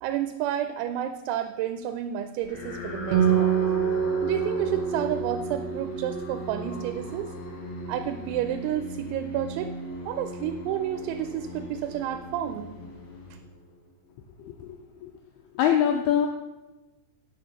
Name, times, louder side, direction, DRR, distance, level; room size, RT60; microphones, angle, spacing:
voice 1, 0.0-3.6 4.2-7.3 7.9-9.7 10.1-12.7, right 11 dB, 90° right, 9 dB, 3.0 m, -30 dB
sound 1, 2.4-13.9, left 1 dB, 70° left, 1.4 m, -38 dB
Acoustic guitar, 3.1-6.8, right 8 dB, 75° right, 2.7 m, -26 dB
voice 2, 14.4-15.1 15.6-16.3, left 9 dB, 85° left, 3 dB, 2.2 m, -24 dB
8.8 x 5.6 x 6.7 m, 1.1 s
omnidirectional pair, 5.3 m